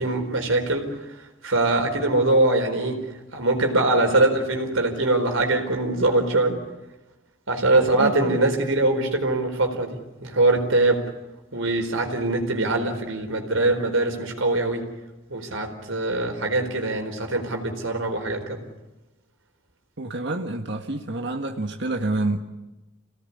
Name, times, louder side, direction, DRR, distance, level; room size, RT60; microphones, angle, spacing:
voice 1, 0.0-3.0 3.3-6.6 7.5-11.1 11.5-14.9 15.3-18.6, right 2 dB, 75° right, 4 dB, 4.4 m, -23 dB
voice 2, 7.7-8.4 20.0-22.4, right 2 dB, 55° right, 3 dB, 1.7 m, -28 dB
28.0 x 18.0 x 9.8 m, 1.1 s
head